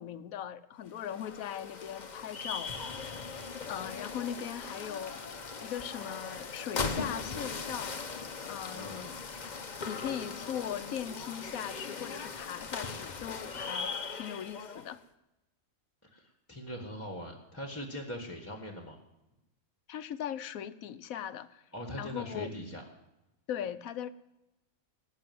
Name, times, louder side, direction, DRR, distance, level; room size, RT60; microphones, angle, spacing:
voice 1, 0.0-2.7 3.7-5.2 5.6-8.0 8.5-9.2 9.8-15.0 19.9-21.6 22.0-22.5 23.5-24.1, left 9 dB, 75° left, 13 dB, 1.1 m, -39 dB
sound 1, 0.9-15.0, left 4 dB, 35° left, 0.9 m, -39 dB
voice 2, 16.0-19.0 21.7-22.8, equal, 10° left, 3 dB, 1.5 m, -41 dB
18.5 x 6.1 x 9.4 m, 0.97 s
omnidirectional pair, 1.5 m